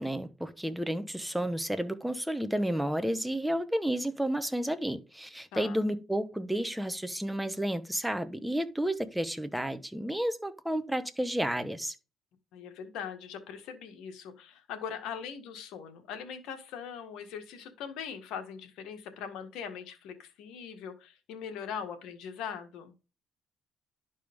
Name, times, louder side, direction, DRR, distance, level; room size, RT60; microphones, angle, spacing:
voice 1, 0.0-12.0, right 1 dB, 5° right, 1.2 m, -31 dB
voice 2, 12.5-22.9, left 7 dB, 85° left, 1.7 m, -41 dB
11.5 x 5.4 x 3.6 m
cardioid pair, 85°, 0 cm